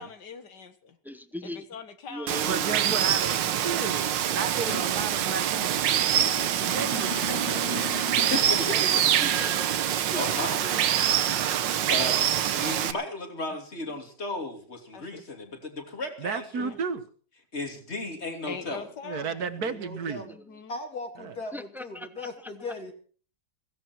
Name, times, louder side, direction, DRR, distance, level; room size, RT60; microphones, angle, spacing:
voice 1, 0.0-1.0 1.4-3.3 14.9-15.2 16.6-16.8 18.5-19.5 20.2-20.8, left 5 dB, 70° left, 9 dB, 2.0 m, -43 dB
voice 2, 1.0-1.6 2.1-3.0 8.7-10.8 14.0-14.1 20.3-20.4 21.5-22.9, left 1 dB, ahead, 11 dB, 0.5 m, -40 dB
Water, 2.3-12.9, right 10 dB, 90° right, 1.6 m, -25 dB
voice 3, 2.5-5.9 6.6-7.7 16.2-17.0 19.0-20.3 21.2-21.3, right 5 dB, 60° right, 11 dB, 1.8 m, -33 dB
voice 4, 4.7-5.1 5.6-9.0 10.1-10.8 11.9-16.7 17.5-18.8, left 2 dB, 35° left, 4 dB, 3.2 m, -35 dB
voice 5, 19.6-20.4 20.7-22.9, left 2 dB, 55° left, 2 dB, 3.6 m, -39 dB
16.5 x 16.5 x 4.5 m, 0.43 s
omnidirectional pair, 1.9 m